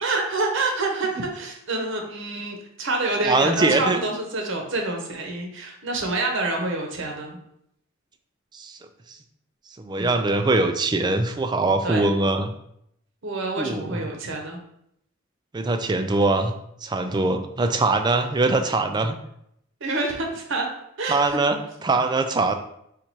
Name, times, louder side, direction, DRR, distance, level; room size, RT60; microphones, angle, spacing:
voice 1, 0.0-7.4 10.0-10.2 11.8-12.1 13.2-14.6 19.8-20.7 21.0-21.4 22.4-22.5, right 2 dB, 60° right, 1 dB, 0.9 m, -27 dB
voice 2, 3.2-4.0 8.5-8.8 9.8-12.5 13.6-14.0 15.5-16.5 16.8-19.2 21.1-22.5, right 2 dB, 20° right, 7 dB, 0.3 m, -22 dB
4.1 x 2.5 x 4.5 m, 0.74 s
head